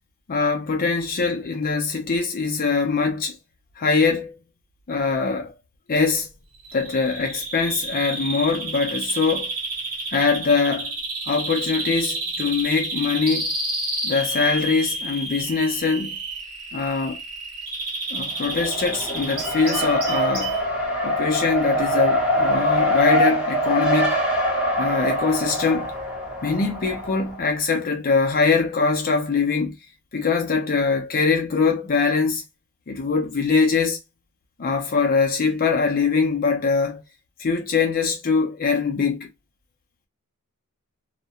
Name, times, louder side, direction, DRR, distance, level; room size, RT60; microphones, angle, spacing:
voice 1, 0.3-3.4 3.8-4.4 4.9-5.5 5.9-6.3 6.7-9.5 10.1-10.9 11.3-13.5 14.0-16.1 16.7-17.2 18.1-20.6 21.0-24.2 24.8-25.9 26.4-29.8 30.1-32.4 32.9-34.0 34.6-37.0 37.4-39.3, left 4 dB, 40° left, 0.5 m, -22 dB
Bird vocalization bird call bird song, 6.6-20.6, right 2 dB, 75° right, 0.9 m, -30 dB
Race car auto racing, 18.3-27.4, equal, 5° right, 0.7 m, -23 dB
2.3 x 2.1 x 2.8 m
head